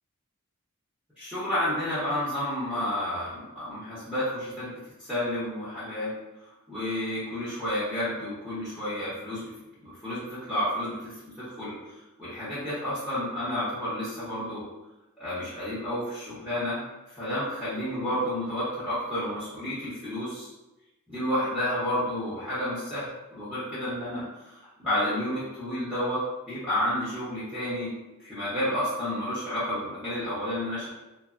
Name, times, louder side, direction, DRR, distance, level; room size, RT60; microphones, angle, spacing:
voice 1, 1.2-6.1 6.4-9.4 9.8-11.7 12.2-14.6 15.2-16.8 17.1-20.5 21.1-23.1 23.3-27.9 28.2-30.9, left 1 dB, 5° right, -12 dB, 0.8 m, -31 dB
3.1 x 2.0 x 2.4 m, 1.0 s
head